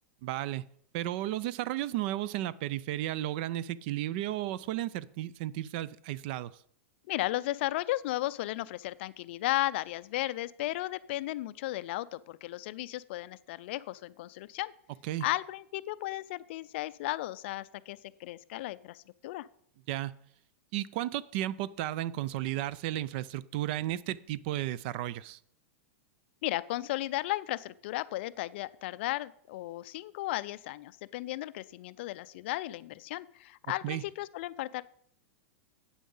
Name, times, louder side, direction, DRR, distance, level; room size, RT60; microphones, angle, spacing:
voice 1, 0.2-0.6 0.9-6.5 15.0-15.3 19.9-20.1 20.7-25.4 33.8-34.0, right 14 dB, 45° right, 19 dB, 0.4 m, -33 dB
voice 2, 7.1-14.7 15.2-19.5 26.4-34.8, left 16 dB, 55° left, 17 dB, 0.4 m, -35 dB
8.7 x 7.1 x 5.5 m, 0.64 s
supercardioid pair, 160°, 7 cm